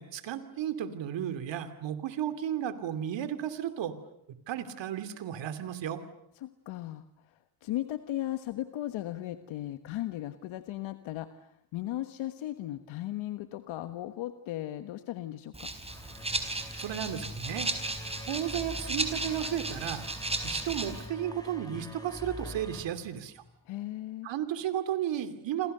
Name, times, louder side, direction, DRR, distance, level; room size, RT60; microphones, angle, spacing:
voice 1, 0.0-3.9 4.5-6.0 16.8-17.7 18.3-20.1 20.4-23.4 24.2-25.7, right 10 dB, 65° right, 11 dB, 2.9 m, -34 dB
voice 2, 6.4-15.7 23.7-24.3, left 14 dB, 80° left, 9 dB, 1.4 m, -37 dB
Rattle (instrument), 15.5-21.1, right 2 dB, 15° right, 4.2 m, -35 dB
sound 1, 15.9-23.7, left 1 dB, 10° left, 4.9 m, -44 dB
29.0 x 26.5 x 6.8 m, 0.74 s
cardioid pair, 110°, 46 cm